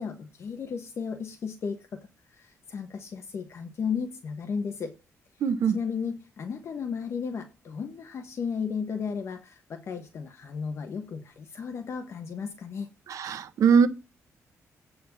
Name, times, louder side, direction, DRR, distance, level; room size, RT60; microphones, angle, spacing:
voice 1, 0.0-2.0 2.3-4.9 5.7-12.9, left 6 dB, 50° left, 1.1 m, -34 dB
voice 2, 5.4-5.8 13.1-13.9, right 6 dB, 70° right, 1.0 m, -21 dB
8.4 x 4.2 x 7.0 m
cardioid pair, 135°, 6 cm